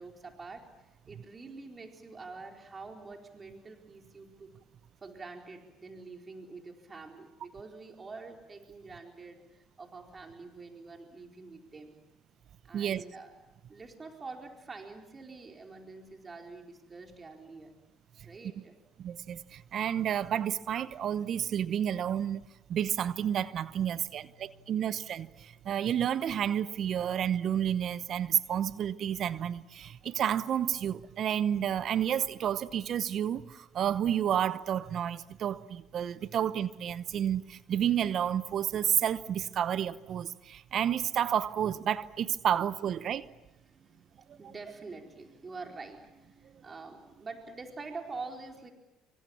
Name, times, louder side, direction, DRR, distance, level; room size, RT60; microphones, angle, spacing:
voice 1, 0.0-4.5 5.0-11.9 12.6-13.3 13.7-17.7 18.2-18.7 23.9-24.9 25.4-25.8 43.5-48.7, right 3 dB, 30° right, 4.3 m, -46 dB
voice 2, 12.7-13.0 19.0-22.4 22.7-43.3 44.3-44.5, right 9 dB, 55° right, 0.9 m, -30 dB
27.5 x 25.0 x 7.3 m
hypercardioid pair, 65°, 0 cm